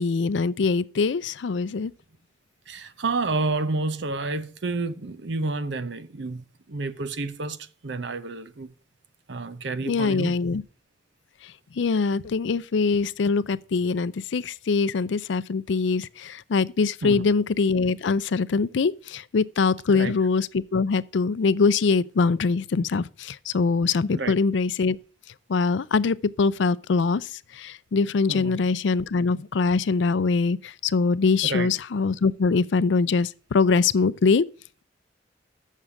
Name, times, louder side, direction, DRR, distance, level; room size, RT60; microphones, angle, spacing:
voice 1, 0.0-1.9 9.9-10.6 11.4-25.0 25.5-34.5, left 4 dB, 75° left, 0.4 m, -23 dB
voice 2, 2.7-8.7 9.3-10.3 17.0-17.2 19.9-20.1 24.1-24.4 28.3-28.6 31.4-31.7, right 3 dB, 70° right, 0.7 m, -30 dB
7.4 x 6.5 x 6.9 m
head